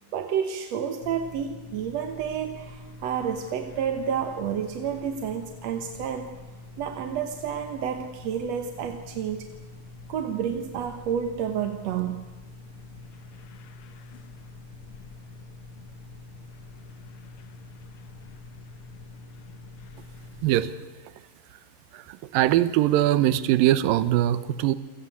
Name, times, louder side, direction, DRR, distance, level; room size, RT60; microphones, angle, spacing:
voice 1, 0.1-6.4 6.8-9.5 10.1-12.3, right 8 dB, 60° right, 6 dB, 2.0 m, -30 dB
sound 1, 1.0-20.7, left 3 dB, 75° left, 1.2 m, -45 dB
voice 2, 21.9-24.7, right 13 dB, 80° right, 13 dB, 2.6 m, -22 dB
28.5 x 17.5 x 8.4 m, 1.3 s
omnidirectional pair, 4.1 m